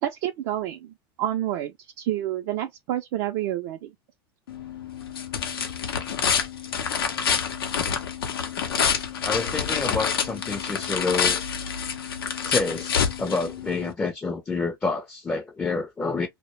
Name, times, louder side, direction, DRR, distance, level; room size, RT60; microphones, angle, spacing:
voice 1, 0.0-3.9, right 13 dB, 60° right, 0.4 m, -29 dB
sound 1, 4.5-13.9, left 7 dB, 90° left, 0.6 m, -27 dB
voice 2, 9.2-11.4 12.2-16.3, left 3 dB, 15° left, 0.4 m, -28 dB
2.1 x 2.0 x 2.9 m
hypercardioid pair, 100°, 12 cm